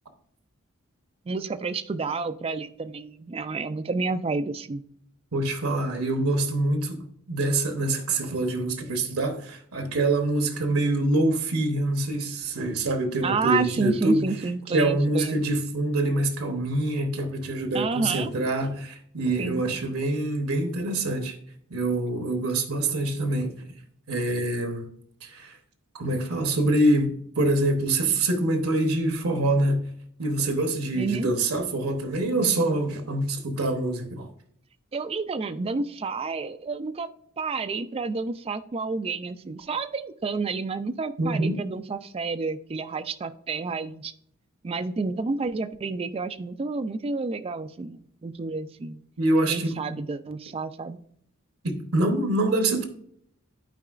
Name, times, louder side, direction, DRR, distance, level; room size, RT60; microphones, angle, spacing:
voice 1, 1.3-4.8 13.2-15.4 17.7-18.3 19.4-19.6 31.0-31.3 34.9-37.1 37.4-44.1 44.6-49.0 49.5-51.0, right 4 dB, 25° right, 0.3 m, -30 dB
voice 2, 5.3-14.2 14.7-21.4 21.7-23.5 24.1-24.9 25.2-25.6 25.9-29.8 30.2-34.3 41.2-41.6 49.2-49.7 51.6-52.9, right 2 dB, 85° right, 1.0 m, -25 dB
11.5 x 4.6 x 2.4 m
head